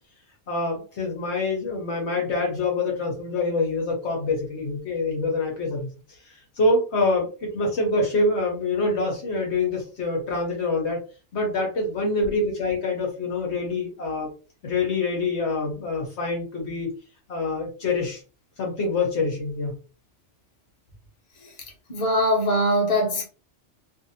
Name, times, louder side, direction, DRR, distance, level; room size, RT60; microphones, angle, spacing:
voice 1, 0.5-5.9 6.2-11.0 11.3-14.3 14.6-16.9 17.3-18.2 18.6-19.7, left 3 dB, 65° left, 1.1 m, -25 dB
voice 2, 21.9-23.3, equal, 35° left, 1.0 m, -22 dB
2.7 x 2.6 x 2.6 m
omnidirectional pair, 1.3 m